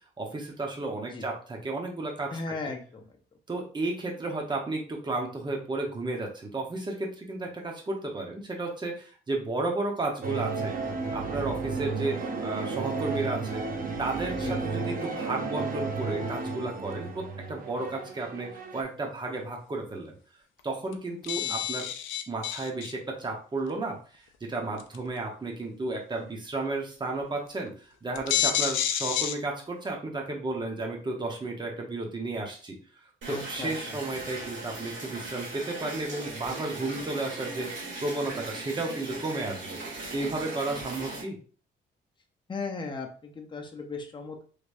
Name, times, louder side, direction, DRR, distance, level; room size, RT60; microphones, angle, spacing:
voice 1, 0.0-2.3 3.5-10.8 11.1-13.6 14.0-20.2 20.6-21.9 22.3-24.0 24.4-32.8 33.3-41.4, right 2 dB, 20° right, 0 dB, 1.0 m, -33 dB
voice 2, 2.3-3.0 14.3-14.6 21.4-21.5 33.3-34.0 42.5-44.4, left 3 dB, 25° left, 2 dB, 0.8 m, -37 dB
sound 1, 10.2-18.8, right 4 dB, 45° right, 0.7 m, -33 dB
sound 2, 20.6-20.7 20.9-21.0 21.2-22.9 23.7-23.8 24.8-25.1 27.2-27.3 27.7-27.8 28.1-29.3, left 9 dB, 80° left, 0.5 m, -29 dB
sound 3, 33.2-41.2, right 3 dB, 70° right, 1.5 m, -39 dB
3.3 x 3.1 x 2.6 m, 0.40 s
cardioid pair, 90°, 20 cm